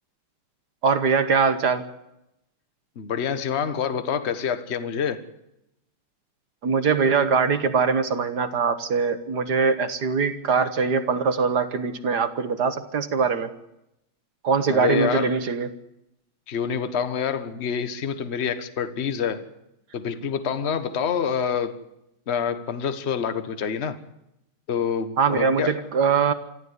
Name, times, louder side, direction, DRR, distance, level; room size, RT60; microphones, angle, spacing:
voice 1, 0.8-1.8 6.6-13.5 14.4-15.7 25.2-26.3, right 5 dB, 55° right, 10 dB, 1.5 m, -22 dB
voice 2, 2.9-5.2 14.7-15.3 16.5-19.4 19.9-21.8 22.3-24.0 24.7-25.9, left 7 dB, 35° left, 10 dB, 1.3 m, -27 dB
25.0 x 14.0 x 8.2 m, 0.85 s
omnidirectional pair, 2.4 m